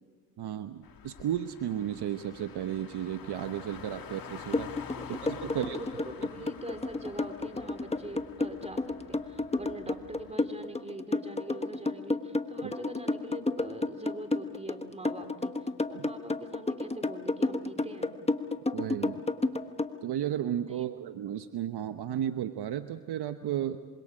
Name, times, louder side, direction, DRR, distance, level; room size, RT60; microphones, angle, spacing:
voice 1, 0.4-4.7 5.2-5.8 12.6-12.7 15.9-16.1 18.7-19.2 20.0-23.8, right 10 dB, 55° right, 9 dB, 1.1 m, -34 dB
Car, 0.8-10.4, left 7 dB, 45° left, 1.9 m, -47 dB
sound 1, 4.5-19.9, left 2 dB, 15° left, 1.2 m, -30 dB
voice 2, 5.0-18.2 20.7-20.8, right 1 dB, 15° right, 6 dB, 3.2 m, -43 dB
26.5 x 25.5 x 5.0 m, 1.4 s
supercardioid pair, 65°, 47 cm